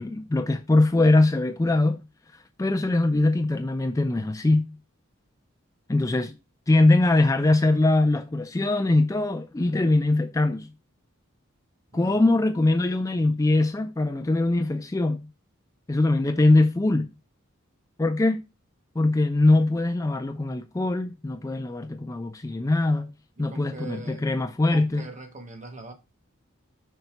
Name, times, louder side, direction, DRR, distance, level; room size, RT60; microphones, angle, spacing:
voice 1, 0.0-2.0 2.3-4.8 5.9-6.3 6.7-10.7 11.9-15.3 15.9-17.1 18.0-18.4 19.0-23.1 23.4-25.0, left 2 dB, 15° left, 0.3 m, -22 dB
voice 2, 11.9-12.4 12.6-12.9 23.4-24.2 24.7-25.9, right 2 dB, 35° right, 1.2 m, -42 dB
5.6 x 3.9 x 5.8 m
head